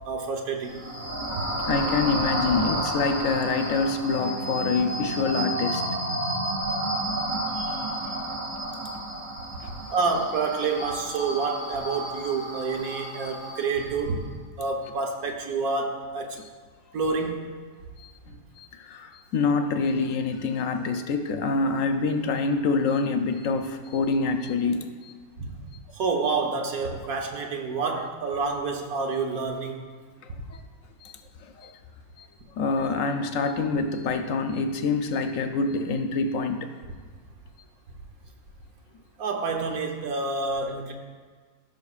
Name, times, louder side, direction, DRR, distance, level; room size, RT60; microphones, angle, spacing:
voice 1, 0.0-0.8 9.7-14.2 14.6-16.4 16.9-17.5 25.4-25.5 25.9-29.8 39.2-40.9, right 4 dB, 80° right, 2 dB, 1.4 m, -28 dB
sound 1, 0.6-14.0, right 1 dB, 35° right, 2.2 m, -31 dB
voice 2, 1.7-5.8 7.0-7.1 7.5-8.1 18.0-25.1 30.5-30.6 31.0-31.1 31.6-31.8 32.2-32.3 32.6-36.7, left 4 dB, 70° left, 7 dB, 1.0 m, -26 dB
16.5 x 5.8 x 2.4 m, 1.6 s
omnidirectional pair, 1.5 m